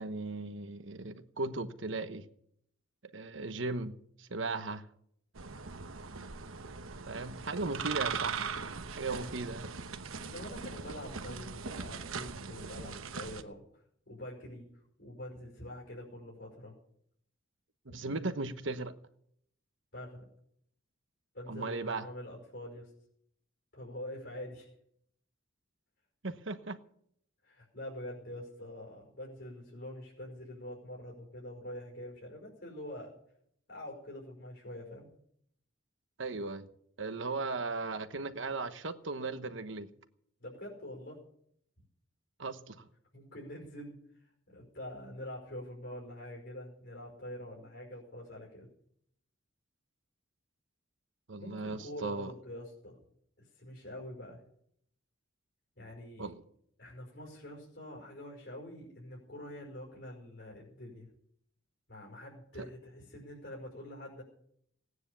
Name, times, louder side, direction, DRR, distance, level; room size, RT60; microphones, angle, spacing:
voice 1, 0.0-2.2 3.1-3.9 4.2-4.8 7.1-8.5 9.0-9.7 17.8-18.9 21.5-22.1 26.2-26.8 36.2-36.7 37.0-39.9 42.4-42.9 51.3-52.3 56.2-56.4, right 3 dB, 70° right, 1.2 m, -37 dB
sound 1, 5.3-13.4, right 5 dB, 90° right, 1.1 m, -40 dB
voice 2, 10.2-14.7 15.0-16.7 19.9-20.2 21.3-22.9 23.7-24.7 27.4-33.1 33.7-35.1 40.4-41.2 43.1-48.7 51.4-53.0 53.4-54.4 55.8-56.3 56.8-61.1 61.9-64.2, left 1 dB, 60° left, 5.5 m, -45 dB
18.0 x 9.7 x 7.0 m
head